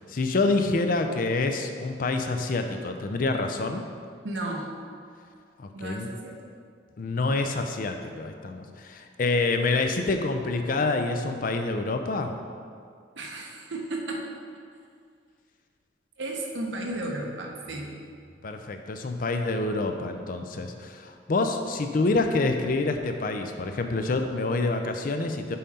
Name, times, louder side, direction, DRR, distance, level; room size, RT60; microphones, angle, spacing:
voice 1, 0.0-3.8 5.6-6.1 7.0-12.3 18.4-25.6, left 3 dB, 50° left, 6 dB, 0.4 m, -27 dB
voice 2, 4.2-4.7 5.7-6.4 13.2-14.3 16.2-18.0, right 2 dB, 85° right, 0 dB, 0.9 m, -34 dB
5.6 x 5.2 x 4.2 m, 2.2 s
head